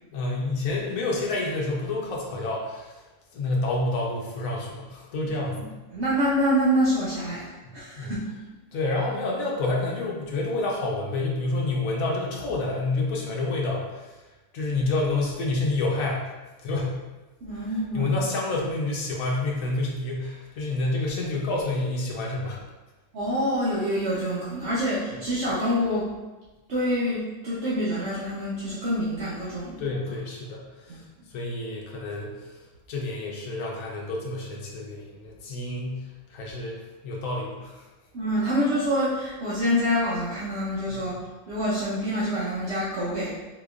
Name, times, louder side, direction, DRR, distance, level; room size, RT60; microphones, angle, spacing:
voice 1, 0.1-3.0 3.3-5.7 7.6-8.1 8.7-14.1 14.5-16.3 16.6-17.0 17.5-22.6 25.1-25.2 29.8-31.0 31.3-32.5 32.9-36.0 36.3-37.8, left 2 dB, 85° left, -2 dB, 1.1 m, -28 dB
voice 2, 5.9-8.2 17.4-18.1 23.1-26.1 26.7-29.9 30.9-31.0 38.1-41.1 41.5-43.3, equal, 60° right, -9 dB, 1.0 m, -26 dB
4.1 x 2.9 x 2.4 m, 1.1 s
omnidirectional pair, 1.4 m